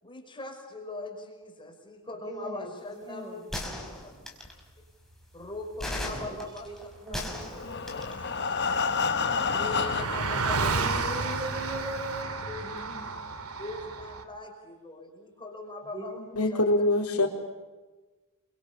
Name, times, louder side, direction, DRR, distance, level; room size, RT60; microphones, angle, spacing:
voice 1, 0.0-3.4 5.3-6.7 7.1-7.5 7.9-8.8 9.5-10.9 12.5-12.9 13.6-16.1 16.5-16.6, left 2 dB, 20° left, 3 dB, 5.7 m, -41 dB
voice 2, 2.2-4.2 6.3-9.4 10.6-13.4 15.9-16.6 17.1-17.3, right 1 dB, 20° right, 4 dB, 5.9 m, -41 dB
sound 1, 3.5-4.6 5.8-8.1, left 1 dB, ahead, 4.9 m, -36 dB
Car passing by, 7.1-7.2 7.4-14.2, right 4 dB, 70° right, 2.7 m, -33 dB
Breathing, 7.4-10.4 11.1-11.2 11.6-11.7 12.1-12.2, left 5 dB, 50° left, 1.1 m, -29 dB
voice 3, 16.4-17.3, left 2 dB, 75° left, 2 dB, 4.2 m, -24 dB
29.0 x 24.5 x 7.0 m, 1.2 s
head